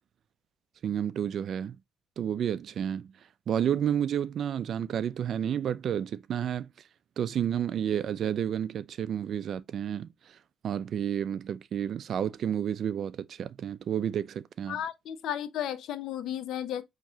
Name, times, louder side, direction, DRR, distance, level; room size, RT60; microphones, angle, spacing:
voice 1, 0.8-1.8 2.2-3.1 3.5-6.7 7.2-10.4 10.6-14.8, right 9 dB, 65° right, 0.4 m, -31 dB
voice 2, 14.7-16.8, left 10 dB, 80° left, 0.5 m, -34 dB
5.8 x 2.9 x 2.7 m
cardioid pair, 90°, 0 cm